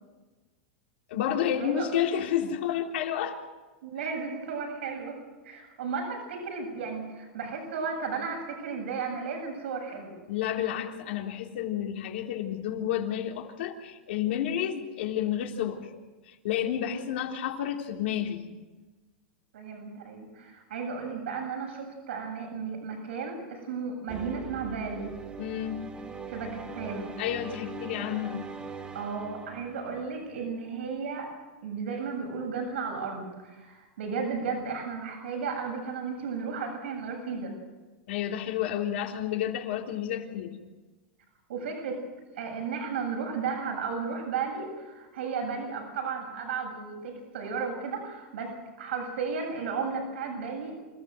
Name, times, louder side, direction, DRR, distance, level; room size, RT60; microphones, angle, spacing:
voice 1, 1.1-3.4 10.3-15.9 16.3-18.4 25.4-25.8 27.2-28.5 38.1-40.6, left 10 dB, 70° left, 2 dB, 3.6 m, -30 dB
voice 2, 3.8-5.2 5.4-10.2 19.5-25.1 26.3-27.1 28.9-31.3 31.6-37.5 41.5-42.0 42.4-50.8, right 5 dB, 85° right, 2 dB, 7.6 m, -34 dB
sound 1, 24.1-30.5, right 3 dB, 15° right, 2.6 m, -42 dB
27.5 x 15.0 x 7.9 m, 1.2 s
supercardioid pair, 140°, 6 cm